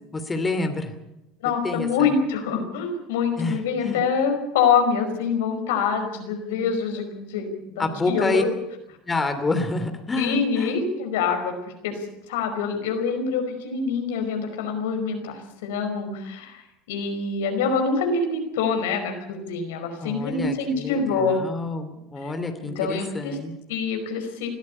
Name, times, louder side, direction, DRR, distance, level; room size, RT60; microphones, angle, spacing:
voice 1, 0.1-0.9 1.6-2.1 3.4-4.0 7.8-8.4 9.1-10.8 20.0-23.5, left 2 dB, 20° left, 7 dB, 2.8 m, -28 dB
voice 2, 1.4-8.5 10.2-12.0 12.3-16.6 16.9-21.4 22.2-22.3 22.7-23.4 23.7-24.6, left 5 dB, 85° left, 5 dB, 5.1 m, -25 dB
20.5 x 13.5 x 9.8 m, 0.89 s
supercardioid pair, 105°, 0 cm